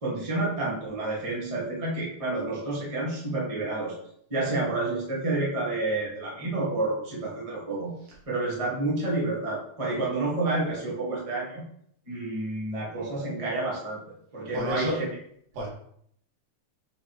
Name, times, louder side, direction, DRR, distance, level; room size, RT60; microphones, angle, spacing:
voice 1, 0.0-4.0 4.3-7.9 8.3-11.6 12.1-14.0 14.3-15.2, right 2 dB, 15° right, -5 dB, 1.1 m, -29 dB
voice 2, 14.5-15.0 15.5-15.7, equal, 80° right, -5 dB, 3.5 m, -29 dB
8.3 x 3.9 x 3.1 m, 0.67 s
omnidirectional pair, 3.6 m